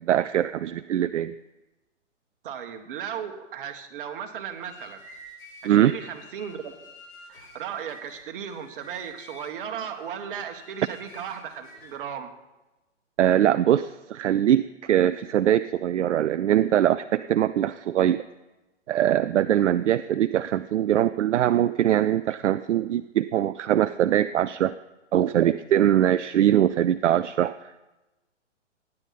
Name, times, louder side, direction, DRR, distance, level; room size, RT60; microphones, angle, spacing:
voice 1, 0.1-1.3 5.6-5.9 13.2-18.2 18.9-24.7 25.1-27.6, right 11 dB, 70° right, 12 dB, 0.5 m, -22 dB
voice 2, 2.4-5.0 5.6-6.8 7.3-12.3, right 8 dB, 45° right, 5 dB, 1.6 m, -36 dB
sound 1, 4.4-12.1, left 1 dB, 55° left, 5.6 m, -49 dB
16.0 x 10.0 x 4.2 m, 1.0 s
hypercardioid pair, 135°, 37 cm